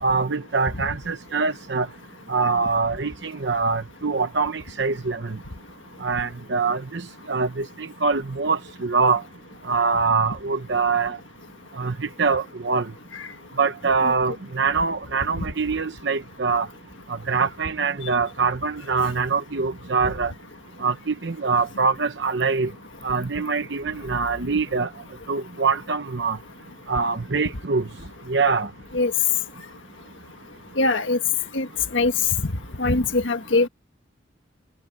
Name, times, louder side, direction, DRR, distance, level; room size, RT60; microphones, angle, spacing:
voice 1, 0.0-1.9 2.3-5.4 6.0-7.0 7.3-9.2 9.6-11.2 11.8-12.9 13.6-16.7 17.3-20.3 20.8-22.7 23.0-24.9 25.3-26.4 26.9-27.8 28.3-28.7, right 4 dB, 65° right, 0.9 m, -24 dB
voice 2, 30.8-31.2 31.5-31.7 31.9-32.1 32.8-33.7, left 2 dB, 85° left, 1.5 m, -22 dB
head